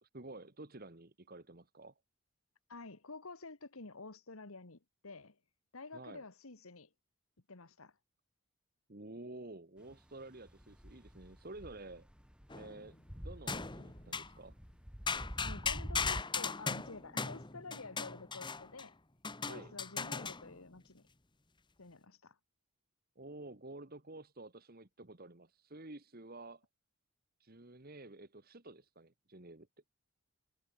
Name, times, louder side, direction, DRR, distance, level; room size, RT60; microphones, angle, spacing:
voice 1, 0.0-1.9 5.9-6.2 8.9-12.1 12.5-14.5 19.4-19.7 23.1-26.7 27.4-29.7, right 2 dB, 45° right, 1.6 m, -51 dB
voice 2, 2.7-5.4 5.7-6.9 7.5-8.0 15.4-19.0 19.5-21.1 21.8-22.4, left 3 dB, 75° left, 1.7 m, -50 dB
sound 1, 9.8-16.2, equal, 5° right, 3.5 m, -47 dB
sound 2, 12.5-13.0 13.5-14.4 15.1-18.9 19.2-20.6, left 5 dB, 20° left, 1.4 m, -38 dB
head